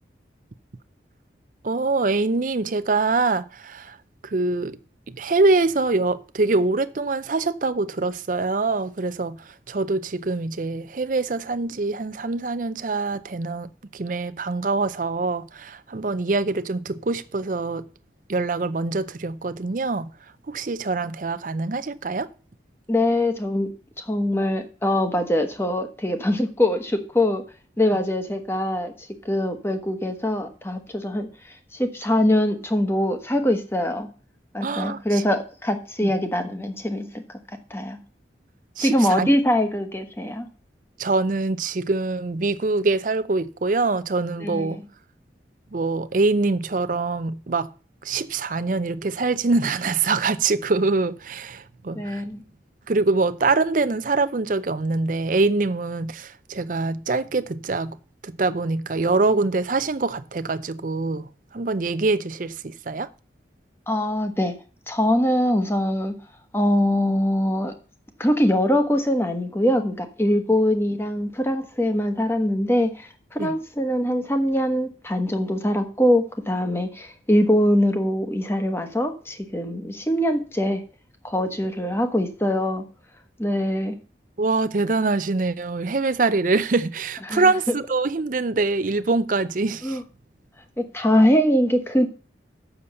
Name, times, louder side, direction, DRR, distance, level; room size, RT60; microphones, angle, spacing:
voice 1, 1.6-4.0 4.2-4.8 5.1-9.4 9.7-17.9 18.3-20.1 20.5-22.3 34.6-35.2 36.0-36.1 38.8-39.3 41.0-44.8 45.7-47.7 48.0-52.2 52.9-58.0 58.2-61.3 61.5-63.1 73.4-73.6 84.4-90.0, right 3 dB, 45° right, 0.5 m, -24 dB
voice 2, 22.9-27.4 27.8-34.1 34.5-37.2 37.5-38.0 38.8-40.4 44.4-44.9 51.9-52.4 63.9-64.6 64.9-66.2 66.5-67.7 68.2-80.8 81.2-82.9 83.4-84.0 87.3-87.5 89.8-90.0 90.8-92.1, left 1 dB, 15° left, 1.1 m, -23 dB
7.1 x 6.7 x 6.8 m
head